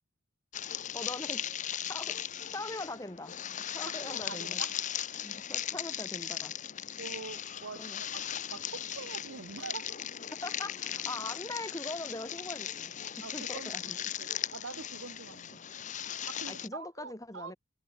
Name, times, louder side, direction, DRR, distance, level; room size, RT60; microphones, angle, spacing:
sound 1, 0.5-16.7, left 10 dB, 35° left, 0.7 m, -38 dB
voice 1, 0.9-1.5 1.9-2.2 2.5-3.4 3.7-4.6 5.2-6.5 7.8-8.0 10.4-14.0 16.5-17.6, left 2 dB, 15° left, 3.9 m, -41 dB
voice 2, 3.9-4.7 7.0-8.2 8.5-10.0 13.2-15.6 16.3-17.5, right 4 dB, 65° right, 1.1 m, -45 dB
head